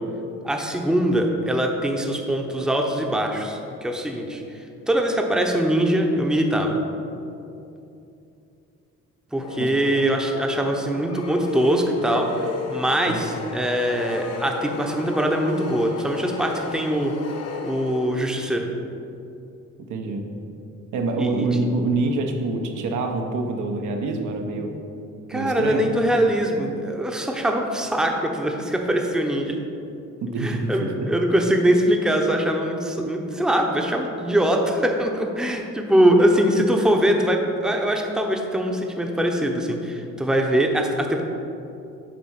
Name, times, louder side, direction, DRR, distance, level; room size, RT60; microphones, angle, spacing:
voice 1, 0.4-6.8 9.3-17.1 17.6-18.7 21.2-21.5 25.3-29.5 30.4-41.2, right 1 dB, ahead, 2 dB, 0.7 m, -22 dB
sound 1, 9.4-18.5, left 5 dB, 55° left, 0.8 m, -35 dB
voice 2, 19.9-20.3 20.9-24.8 25.3-25.9 30.2-31.1, right 3 dB, 80° right, 2 dB, 0.8 m, -26 dB
7.6 x 3.5 x 5.7 m, 2.7 s
cardioid pair, 90°, 30 cm